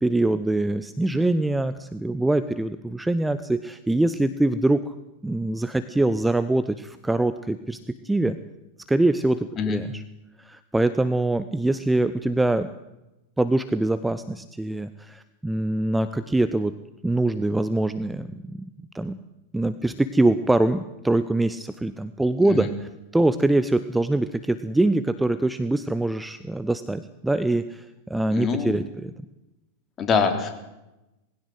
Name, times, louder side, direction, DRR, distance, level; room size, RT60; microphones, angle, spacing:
voice 1, 0.0-4.9 5.2-8.4 8.9-10.0 10.4-12.7 13.4-16.7 17.0-18.6 18.9-19.2 19.5-29.1, right 2 dB, 5° right, 12 dB, 0.8 m, -24 dB
voice 2, 28.3-28.7 30.0-30.5, left 5 dB, 25° left, 6 dB, 3.6 m, -24 dB
20.5 x 16.5 x 8.0 m, 0.97 s
figure-of-eight pair, 90°, 0 cm